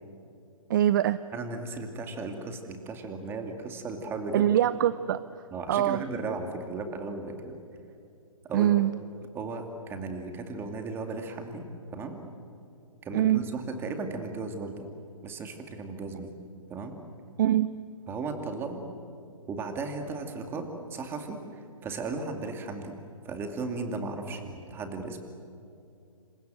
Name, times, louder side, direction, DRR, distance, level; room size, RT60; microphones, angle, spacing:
voice 1, 0.7-1.2 4.3-5.2 5.7-6.0 8.5-8.9 13.1-13.4 17.4-17.7, right 12 dB, 35° right, 15 dB, 0.6 m, -23 dB
voice 2, 1.3-4.5 5.5-7.6 8.4-8.7 9.3-11.7 11.9-12.2 13.0-14.9 15.2-16.3 16.7-17.0 18.1-18.8 19.5-21.4 21.8-22.9 23.2-25.2, right 3 dB, 15° right, 5 dB, 2.5 m, -36 dB
28.0 x 26.5 x 7.8 m, 2.6 s
hypercardioid pair, 145°, 18 cm